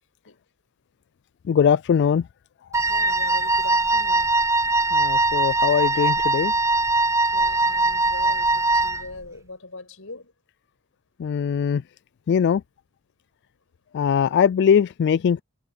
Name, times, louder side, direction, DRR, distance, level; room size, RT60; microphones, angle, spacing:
voice 1, 1.5-2.2 4.9-6.5 11.2-11.8 12.3-12.6 13.9-15.4, left 7 dB, 55° left, 0.3 m, -21 dB
Wind instrument woodwind instrument, 2.7-9.1, right 2 dB, 15° right, 0.8 m, -21 dB
voice 2, 2.8-4.3 7.3-10.3, left 3 dB, 75° left, 6.4 m, -41 dB
head